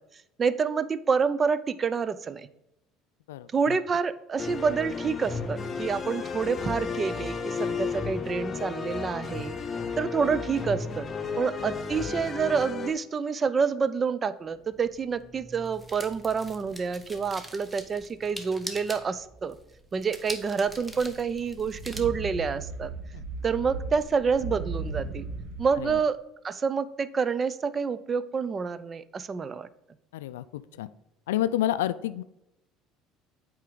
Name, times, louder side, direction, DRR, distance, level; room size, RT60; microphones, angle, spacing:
voice 1, 0.4-2.5 3.5-9.6 10.0-11.1 11.4-19.6 19.9-22.9 23.4-25.3 25.6-26.2 26.4-29.7, right 5 dB, 35° right, 16 dB, 0.5 m, -28 dB
voice 2, 3.3-3.8 11.3-11.4 23.1-23.2 25.8-26.0 30.1-30.9 31.3-32.2, left 13 dB, 80° left, 16 dB, 0.3 m, -30 dB
sound 1, 4.4-12.9, left 5 dB, 30° left, 0.8 m, -33 dB
sound 2, 14.5-22.0, right 1 dB, 15° right, 1.1 m, -44 dB
sound 3, 20.6-26.0, right 3 dB, 70° right, 1.1 m, -37 dB
8.3 x 4.6 x 3.9 m, 0.87 s
hypercardioid pair, 65°, 0 cm